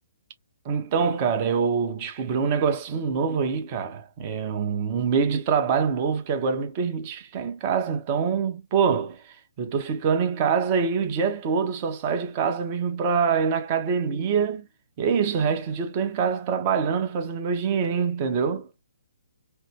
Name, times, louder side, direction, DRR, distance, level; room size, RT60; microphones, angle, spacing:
voice 1, 0.6-9.2 9.6-14.7 15.0-18.7, right 6 dB, 35° right, 0.9 m, -25 dB
3.3 x 2.0 x 3.0 m
figure-of-eight pair, 130°, 0 cm